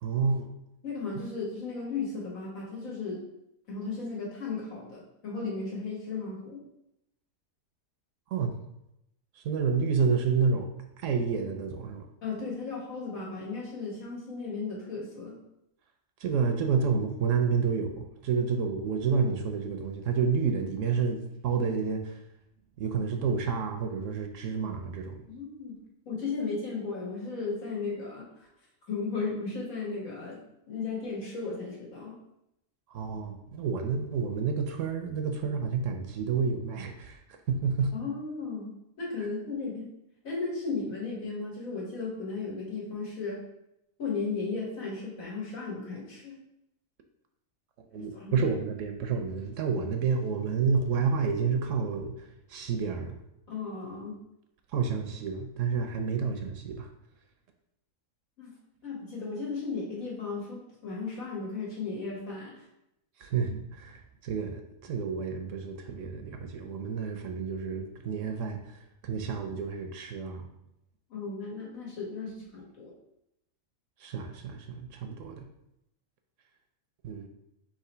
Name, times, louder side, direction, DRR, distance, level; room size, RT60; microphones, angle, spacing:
voice 1, 0.0-0.5 8.3-8.5 9.4-10.7 11.0-12.1 16.2-22.2 22.8-25.2 32.9-37.2 37.5-37.9 47.9-53.2 54.7-56.9 63.2-70.5 72.4-72.5 74.0-75.5 77.0-77.3, right 5 dB, 70° right, 5 dB, 0.9 m, -29 dB
voice 2, 0.8-3.2 3.7-6.6 12.2-15.4 25.3-25.8 26.1-28.3 28.9-30.4 30.7-32.2 37.9-39.9 40.2-43.4 44.0-46.4 48.0-48.5 53.5-54.2 58.4-58.5 58.8-62.6 71.1-72.9, left 4 dB, 80° left, -4 dB, 1.9 m, -35 dB
3.8 x 3.0 x 4.3 m, 0.83 s
omnidirectional pair, 1.4 m